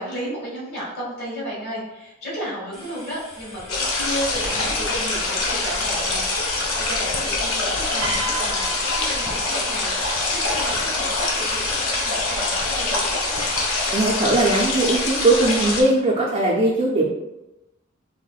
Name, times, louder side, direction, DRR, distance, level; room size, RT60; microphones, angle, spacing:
voice 1, 0.0-13.5, equal, 50° left, -7 dB, 1.5 m, -33 dB
sound 1, 2.7-14.1, left 1 dB, 25° left, 1.0 m, -40 dB
sound 2, 3.7-15.8, left 2 dB, 85° left, 0.8 m, -24 dB
Piano, 8.0-10.4 11.4-11.7, right 1 dB, 80° right, 0.6 m, -33 dB
voice 2, 13.9-17.1, right 2 dB, 30° right, -4 dB, 0.4 m, -19 dB
5.5 x 2.1 x 2.3 m, 0.98 s
head